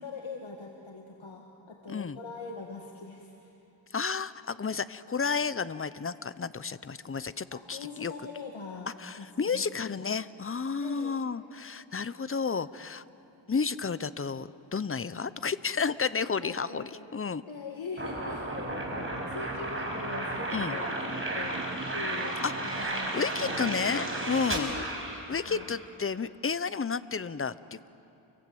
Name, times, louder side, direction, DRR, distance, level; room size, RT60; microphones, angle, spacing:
voice 1, 0.0-3.6 7.5-9.6 10.8-11.1 16.2-16.9 17.5-21.6 21.9-23.1 23.4-23.7 24.5-24.9 25.5-25.7, left 4 dB, 80° left, 1 dB, 2.0 m, -42 dB
voice 2, 1.9-2.2 3.9-8.1 9.0-13.0 13.5-17.4 20.5-20.8 22.4-24.7 25.3-27.9, left 5 dB, 30° left, 16 dB, 0.7 m, -32 dB
sound 1, 18.0-25.8, right 2 dB, 25° right, 5.3 m, -33 dB
29.0 x 24.0 x 7.9 m, 2.9 s
wide cardioid pair, 85°, 47 cm